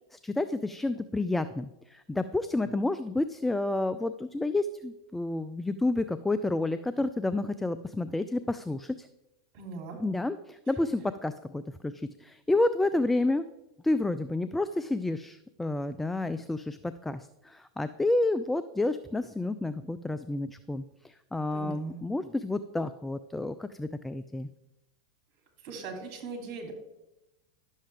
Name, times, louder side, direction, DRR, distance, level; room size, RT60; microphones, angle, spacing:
voice 1, 0.1-9.1 10.0-13.4 13.8-24.5, left 2 dB, 5° left, 12 dB, 0.4 m, -30 dB
voice 2, 9.5-10.0 21.5-22.0 25.6-26.7, right 4 dB, 50° right, 3 dB, 2.8 m, -39 dB
11.5 x 7.3 x 3.4 m, 0.93 s
hypercardioid pair, 95°, 2 cm